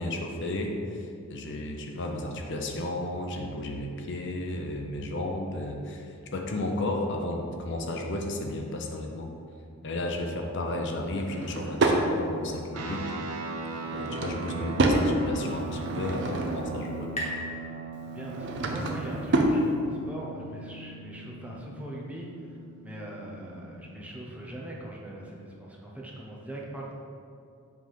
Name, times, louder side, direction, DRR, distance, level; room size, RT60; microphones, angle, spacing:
voice 1, 0.0-9.3 9.8-13.1 13.9-17.1, left 1 dB, 50° left, 2 dB, 0.6 m, -33 dB
Drawer open or close / Wood, 11.1-12.1 13.8-15.1 15.6-16.8 18.1-19.6, right 2 dB, 50° right, 0.6 m, -28 dB
sound 1, 12.7-24.5, right 4 dB, 90° right, 0.9 m, -39 dB
sound 2, 15.7-19.1, left 1 dB, 30° left, 1.1 m, -41 dB
voice 2, 18.1-22.6 22.8-27.0, right 1 dB, 5° right, -3 dB, 0.7 m, -41 dB
7.7 x 3.4 x 5.7 m, 2.5 s
head